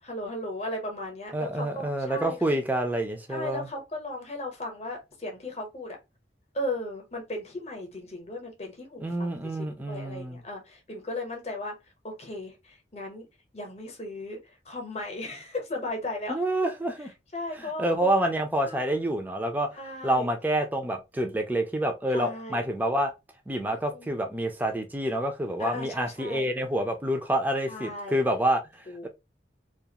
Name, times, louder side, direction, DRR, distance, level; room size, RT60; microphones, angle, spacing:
voice 1, 0.0-2.4 3.3-6.0 6.5-11.7 12.0-13.3 13.5-16.4 17.3-18.1 18.6-18.9 19.7-20.3 22.1-22.6 23.7-24.1 25.6-26.5 27.7-28.2 28.9-29.1, left 1 dB, 35° left, 0.8 m, -36 dB
voice 2, 1.3-3.7 9.0-10.4 16.3-17.1 17.5-19.7 20.0-23.1 23.5-29.1, right 1 dB, 10° right, 0.4 m, -28 dB
2.4 x 2.4 x 2.8 m
head